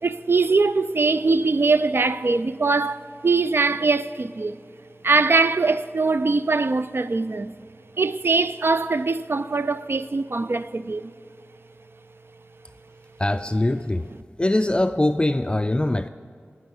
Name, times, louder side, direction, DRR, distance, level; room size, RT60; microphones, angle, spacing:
voice 1, 0.0-4.6 5.0-7.5 8.0-11.1, right 3 dB, 60° right, 0.3 m, -22 dB
voice 2, 13.2-14.1 14.4-16.1, left 1 dB, 20° left, 0.3 m, -22 dB
16.5 x 6.2 x 5.5 m
wide cardioid pair, 55°, 4 cm